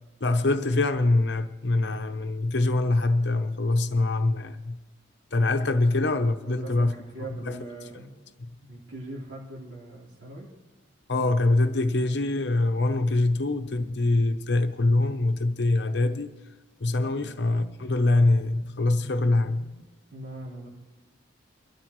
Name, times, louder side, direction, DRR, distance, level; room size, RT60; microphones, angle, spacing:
voice 1, 0.2-4.8 5.3-6.9 7.5-7.6 11.1-16.3 16.8-19.8, left 2 dB, 60° left, 0.8 m, -24 dB
voice 2, 6.4-8.1 8.7-10.5 17.1-17.3 20.1-20.7, right 2 dB, 70° right, 4.1 m, -41 dB
23.0 x 12.5 x 3.1 m
head